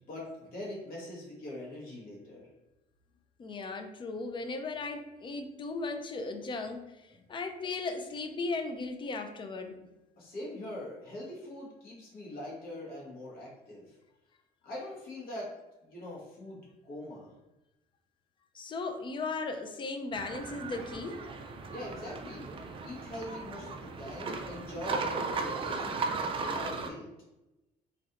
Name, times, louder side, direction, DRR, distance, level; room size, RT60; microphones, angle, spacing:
voice 1, 0.1-2.5 7.1-7.2 10.2-14.0 14.6-15.5 15.8-17.3 21.7-22.5 22.8-27.1, left 1 dB, 60° left, -5 dB, 1.5 m, -43 dB
voice 2, 3.4-9.8 18.5-21.2, left 3 dB, 30° left, 6 dB, 0.4 m, -37 dB
sound 1, 20.1-26.9, right 4 dB, 30° right, 0.4 m, -36 dB
3.1 x 2.5 x 2.9 m, 0.97 s
cardioid pair, 110°, 17 cm